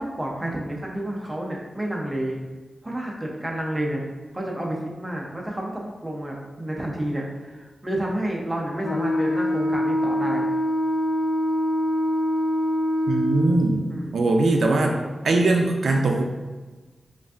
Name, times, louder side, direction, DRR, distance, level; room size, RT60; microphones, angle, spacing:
voice 1, 0.0-2.4 2.8-4.0 4.3-10.5 13.9-14.2 14.6-15.0, right 1 dB, 15° right, -2 dB, 0.6 m, -30 dB
Wind instrument woodwind instrument, 8.8-13.7, equal, 35° left, 0.6 m, -24 dB
voice 2, 13.1-13.9 14.1-14.9 15.2-16.2, right 2 dB, 75° right, 2 dB, 0.4 m, -21 dB
5.0 x 2.5 x 2.4 m, 1.3 s
wide cardioid pair, 155°, 0 cm